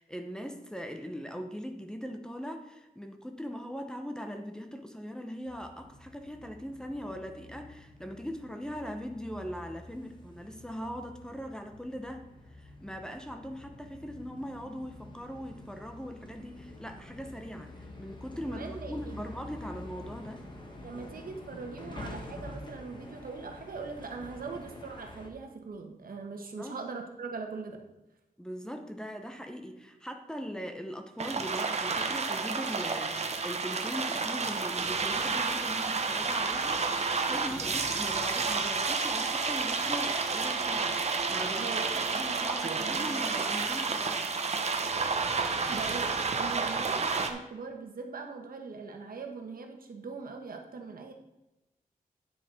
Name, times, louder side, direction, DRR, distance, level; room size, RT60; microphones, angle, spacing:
voice 1, 0.0-17.7 18.0-20.4 26.6-26.8 28.4-44.3, equal, 5° left, 4 dB, 0.7 m, -40 dB
sound 1, 5.5-25.3, left 2 dB, 30° left, 1.5 m, -48 dB
voice 2, 18.5-19.2 20.8-27.8 41.6-43.1 45.7-51.1, right 4 dB, 70° right, 4 dB, 1.3 m, -41 dB
sound 2, 31.2-47.3, right 4 dB, 45° right, 0.9 m, -30 dB
9.7 x 6.5 x 4.8 m, 0.99 s
wide cardioid pair, 170°, 15 cm